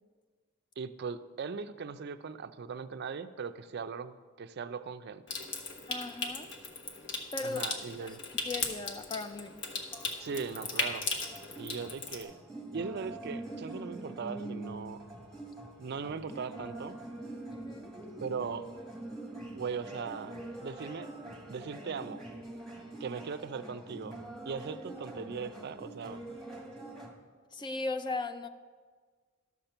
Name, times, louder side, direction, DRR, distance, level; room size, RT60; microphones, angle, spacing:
voice 1, 0.8-5.2 7.4-8.2 10.2-11.0 11.6-12.4 12.7-15.0 15.8-17.0 18.2-18.7 19.5-20.4 20.6-21.1 21.5-22.2 23.0-24.2 24.5-26.2, right 5 dB, 55° right, 12 dB, 0.4 m, -39 dB
Water tap faucet / Sink (filling or washing) / Trickle dribble, 5.3-12.2, left 3 dB, 60° left, 1.2 m, -37 dB
voice 2, 5.9-6.5 7.3-8.1 8.5-9.6 17.5-17.9 27.5-28.5, left 3 dB, 20° left, 10 dB, 0.4 m, -37 dB
sound 1, 9.1-27.1, right 2 dB, ahead, 1.5 m, -44 dB
12.5 x 5.9 x 6.7 m, 1.5 s
head